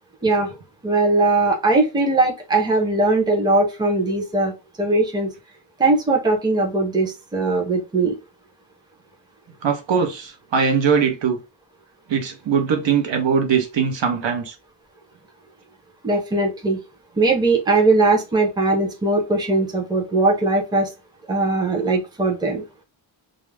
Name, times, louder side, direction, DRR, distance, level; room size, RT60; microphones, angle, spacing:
voice 1, 0.2-0.5 0.8-4.5 4.8-5.3 5.8-8.1 16.0-16.8 17.2-20.9 21.3-22.6, right 2 dB, 10° right, 0.5 m, -20 dB
voice 2, 9.6-11.4 12.1-14.5, right 6 dB, 75° right, 0.8 m, -21 dB
2.4 x 2.0 x 3.1 m
wide cardioid pair, 180°, 46 cm